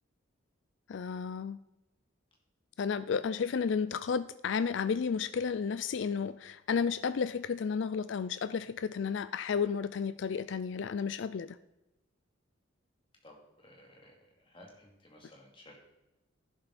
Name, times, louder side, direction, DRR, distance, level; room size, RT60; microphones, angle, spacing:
voice 1, 0.9-1.6 2.8-11.6, left 6 dB, 65° left, 0.4 m, -32 dB
voice 2, 13.2-15.8, left 1 dB, 25° left, 2.4 m, -56 dB
11.5 x 11.0 x 4.2 m
head